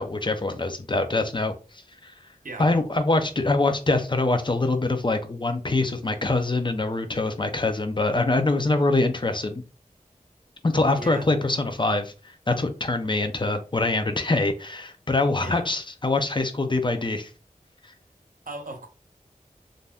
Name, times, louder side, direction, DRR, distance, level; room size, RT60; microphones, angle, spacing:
voice 1, 0.0-1.5 2.0-2.1 2.6-9.6 10.6-12.1 12.5-17.3, left 2 dB, 35° left, 0.5 m, -24 dB
voice 2, 11.0-11.3 15.4-15.7 18.5-18.9, right 2 dB, 70° right, 0.7 m, -37 dB
2.6 x 2.1 x 3.4 m
wide cardioid pair, 60°, 15 cm